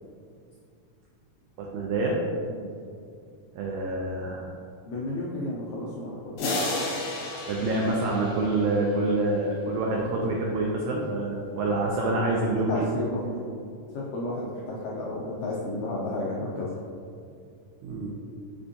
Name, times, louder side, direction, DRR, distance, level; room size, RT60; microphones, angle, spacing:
voice 1, 1.6-2.2 3.5-4.5 7.4-12.9 17.8-18.1, right 2 dB, 85° right, -2 dB, 1.7 m, -27 dB
voice 2, 4.8-6.2 12.5-13.5 13.9-16.7, left 1 dB, 90° left, -5 dB, 1.6 m, -32 dB
sound 1, 6.4-9.1, left 2 dB, 70° left, 2.2 m, -32 dB
5.5 x 3.4 x 2.6 m, 2.4 s
omnidirectional pair, 3.9 m